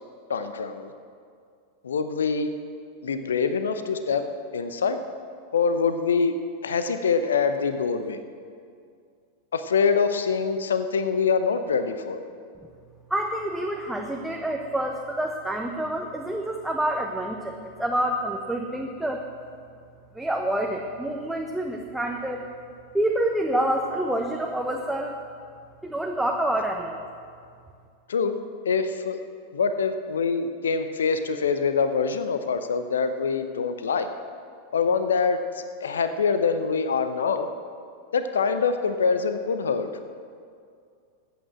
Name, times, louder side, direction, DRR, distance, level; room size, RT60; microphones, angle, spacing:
voice 1, 0.3-0.9 1.8-2.5 3.0-4.2 4.5-5.0 5.5-6.4 6.6-8.2 9.5-12.2 28.1-28.4 28.6-29.2 29.5-34.1 34.7-37.5 38.1-39.9, left 5 dB, 65° left, 9 dB, 0.7 m, -24 dB
voice 2, 13.1-19.2 20.1-22.4 22.9-25.2 25.8-27.0, right 1 dB, 5° right, 1 dB, 1.0 m, -27 dB
13.5 x 8.8 x 7.5 m, 2.3 s
figure-of-eight pair, 90°, 0 cm